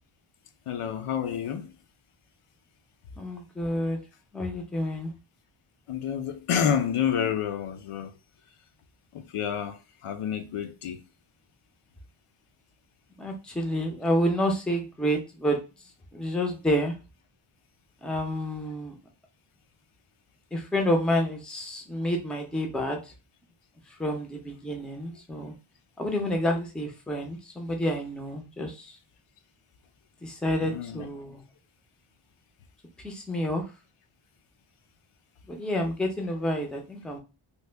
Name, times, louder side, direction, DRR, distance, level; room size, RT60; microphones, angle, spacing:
voice 1, 0.7-1.7 5.9-8.1 9.1-11.0 30.6-31.1, left 8 dB, 85° left, 0.6 m, -29 dB
voice 2, 3.2-4.0 4.3-5.1 13.2-15.6 16.1-16.9 18.0-18.9 20.5-23.1 23.9-25.5 26.0-28.9 30.2-31.4 33.0-33.6 35.5-37.2, equal, ahead, 0.4 m, -29 dB
3.1 x 2.2 x 3.3 m
wide cardioid pair, 175°, 50 cm